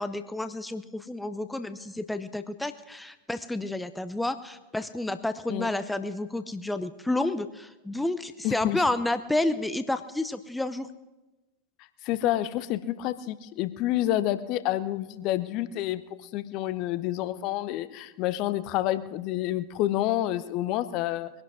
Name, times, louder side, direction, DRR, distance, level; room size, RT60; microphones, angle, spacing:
voice 1, 0.0-10.9, left 2 dB, 5° left, 11 dB, 0.7 m, -30 dB
voice 2, 8.4-8.8 12.0-16.0 16.3-21.3, left 14 dB, 40° left, 15 dB, 0.7 m, -28 dB
22.0 x 11.5 x 4.9 m, 1.1 s
figure-of-eight pair, 90°, 0 cm